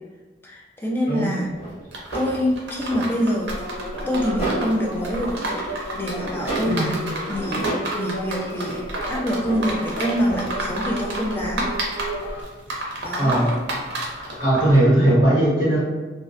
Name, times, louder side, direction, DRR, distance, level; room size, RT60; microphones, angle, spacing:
voice 1, 0.4-1.5 2.1-3.5 4.1-7.0 7.3-11.7 13.0-13.7, equal, 15° left, -2 dB, 0.3 m, -26 dB
sound 1, 1.6-3.1 3.6-4.9 5.2-5.8 6.1-6.8 7.2-8.0 8.2-9.7 10.2-10.5 10.9-11.3 11.9-12.0 14.4-14.5, right 2 dB, 35° left, 1.3 m, -32 dB
sound 2, 1.9-14.8, right 1 dB, 90° right, 0.5 m, -31 dB
sound 3, 3.5-12.4, equal, 80° left, 0.5 m, -33 dB
voice 2, 13.2-13.5 14.4-15.8, right 1 dB, 65° left, -9 dB, 1.4 m, -18 dB
2.5 x 2.0 x 2.4 m, 1.3 s
head